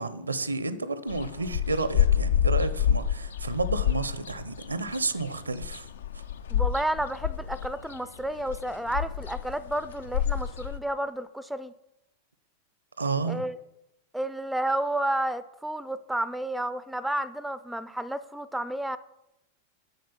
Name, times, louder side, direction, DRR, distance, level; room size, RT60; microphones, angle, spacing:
voice 1, 0.0-5.9 13.0-13.4, right 3 dB, 80° right, 0.6 m, -31 dB
sound 1, 1.1-10.8, left 9 dB, 65° left, 0.5 m, -28 dB
voice 2, 6.5-11.7 13.2-13.6 14.1-19.0, right 1 dB, 5° right, 0.4 m, -31 dB
7.9 x 6.4 x 7.0 m
figure-of-eight pair, 90°, 0 cm